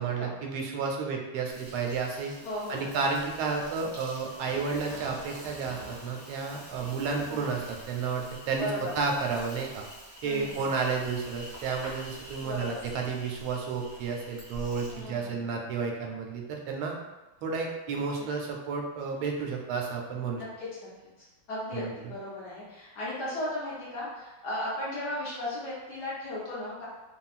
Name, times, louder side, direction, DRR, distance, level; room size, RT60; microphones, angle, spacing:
voice 1, 0.0-2.3 2.7-8.7 9.0-9.8 10.2-16.9 17.4-20.4 21.7-22.1, right 5 dB, 85° right, 1 dB, 1.4 m, -31 dB
Insect, 1.5-15.1, equal, 15° right, 0.5 m, -46 dB
voice 2, 2.4-3.0 7.2-7.5 8.6-8.9 10.2-10.7 12.4-12.8 14.9-15.5 20.6-20.7 21.5-26.9, left 1 dB, 60° left, -8 dB, 1.3 m, -36 dB
3.4 x 2.3 x 2.4 m, 1.1 s
omnidirectional pair, 2.2 m